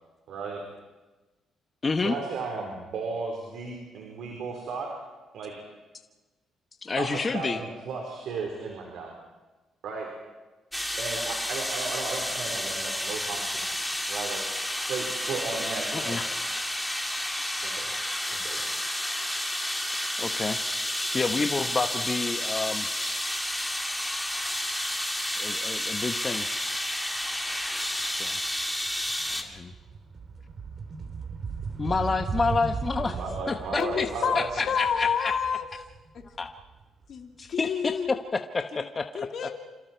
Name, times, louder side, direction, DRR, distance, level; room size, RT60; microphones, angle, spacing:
voice 1, 0.3-0.6 2.0-4.9 5.3-5.5 7.0-9.1 9.8-10.1 11.0-13.7 14.1-14.4 14.8-16.2 17.6-17.9 18.3-18.6 33.0-34.5, right 4 dB, 75° right, 0 dB, 4.6 m, -35 dB
voice 2, 1.8-2.1 6.8-7.6 15.9-16.2 18.7-18.8 20.2-20.6 20.9-22.9 25.4-26.5 28.2-28.4 29.5-29.7 31.8-33.2 33.5-34.1 34.3-35.3 36.4-36.5 37.4-39.5, left 4 dB, 30° left, 6 dB, 1.3 m, -29 dB
sound 1, 10.7-29.4, left 1 dB, 5° left, 2.8 m, -31 dB
sound 2, 28.0-28.2 28.6-37.5, right 5 dB, 50° right, 3.5 m, -37 dB
voice 3, 33.8-35.7 36.1-36.2 37.1-38.2 38.7-38.8 39.1-39.5, left 7 dB, 60° left, 3 dB, 2.9 m, -29 dB
27.5 x 27.5 x 4.7 m, 1.2 s
cardioid pair, 90°, 0 cm